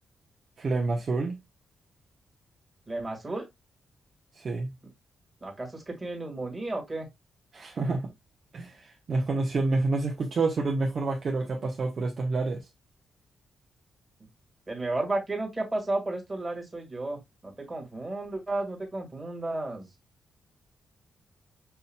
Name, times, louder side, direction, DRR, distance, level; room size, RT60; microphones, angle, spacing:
voice 1, 0.6-1.4 4.4-4.7 7.5-8.1 8.5-12.6, right 3 dB, 45° right, 0.8 m, -28 dB
voice 2, 2.9-3.4 5.4-7.1 14.7-19.9, right 2 dB, 15° right, 1.7 m, -33 dB
5.7 x 2.7 x 2.2 m
cardioid pair, 115°, 0 cm